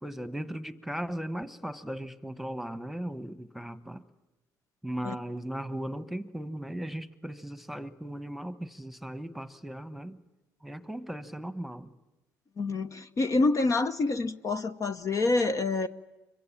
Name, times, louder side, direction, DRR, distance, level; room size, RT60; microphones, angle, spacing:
voice 1, 0.0-4.0 4.8-10.2 10.6-11.9, right 1 dB, ahead, 1.3 m, -37 dB
voice 2, 12.6-15.9, left 3 dB, 40° left, 0.9 m, -27 dB
26.0 x 23.5 x 8.8 m
hypercardioid pair, 65°, 8 cm